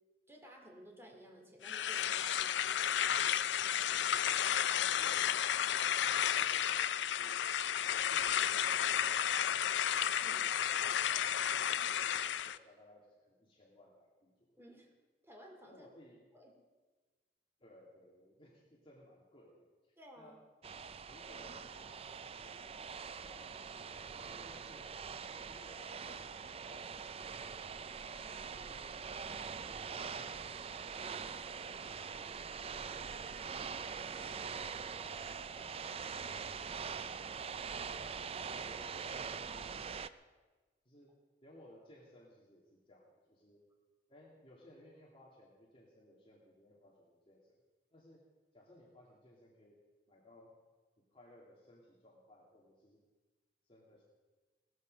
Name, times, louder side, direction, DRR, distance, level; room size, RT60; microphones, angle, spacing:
voice 1, 0.3-3.3 3.7-3.8 4.6-5.1 10.2-10.5 14.6-14.9 15.2-15.9 16.3-16.5 20.0-20.4 28.2-28.5 34.1-34.4, equal, 15° right, 1 dB, 2.5 m, -57 dB
sound 1, 1.6-12.6, left 9 dB, 70° left, 0.4 m, -32 dB
voice 2, 3.9-4.5 5.0-7.4 7.8-9.9 10.3-14.6 15.7-16.2 17.6-20.4 21.1-23.7 24.2-25.0 25.4-27.8 28.5-29.0 29.6-31.4 31.8-33.8 34.2-36.4 37.8-38.1 38.5-40.3 40.9-43.6 44.1-47.5 47.9-48.2 48.5-49.8 50.1-50.6 51.1-53.0 53.6-54.0, left 1 dB, 30° left, -4 dB, 2.3 m, -61 dB
sound 2, 20.6-40.1, right 6 dB, 35° right, 0.4 m, -43 dB
18.0 x 14.0 x 5.2 m, 1.3 s
head